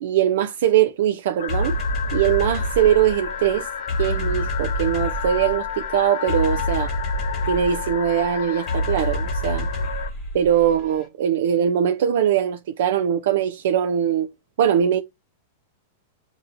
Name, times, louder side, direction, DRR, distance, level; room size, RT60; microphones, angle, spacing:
voice 1, 0.0-1.8 2.1-3.7 4.0-6.9 7.5-9.7 10.3-14.3 14.6-15.0, right 9 dB, 65° right, 0.4 m, -21 dB
sound 1, 1.4-10.1, left 9 dB, 90° left, 0.7 m, -31 dB
sound 2, 1.5-11.0, equal, 20° left, 1.5 m, -28 dB
6.9 x 2.7 x 2.6 m
supercardioid pair, 165°, 0 cm